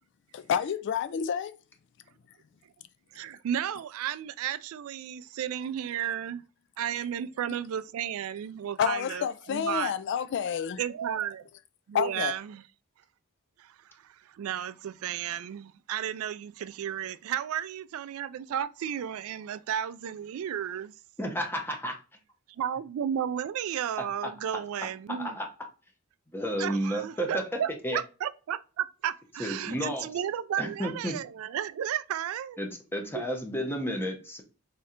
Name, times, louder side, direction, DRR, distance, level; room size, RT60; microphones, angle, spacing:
voice 1, 0.3-1.5 8.8-10.8 11.9-12.3, left 8 dB, 55° left, 0.3 m, -29 dB
voice 2, 3.1-6.4 6.8-9.9 10.8-11.4 11.9-12.6 13.6-20.9 22.6-25.3 26.6-32.6 33.1-33.3, right 9 dB, 70° right, 0.3 m, -33 dB
voice 3, 21.2-22.0 24.2-24.3 25.1-25.5 26.3-27.4 27.8-28.0 29.4-30.1 30.6-31.2 32.6-34.4, equal, 10° left, 0.8 m, -32 dB
3.7 x 3.2 x 4.3 m
head